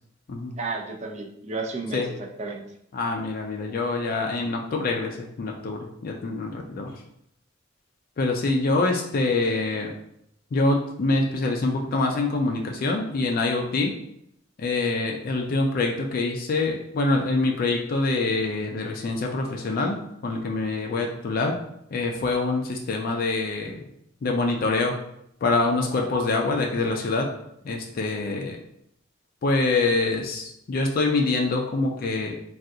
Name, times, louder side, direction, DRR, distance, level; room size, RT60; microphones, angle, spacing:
voice 1, 0.6-2.6, right 3 dB, 35° right, 3 dB, 0.4 m, -32 dB
voice 2, 2.9-6.9 8.2-9.9 10.5-13.9 14.6-20.0 20.2-21.6 21.9-23.8 24.2-24.9 25.4-27.3 27.6-28.6 29.4-32.3, left 3 dB, 50° left, 1 dB, 0.4 m, -25 dB
3.6 x 2.3 x 2.7 m, 0.76 s
head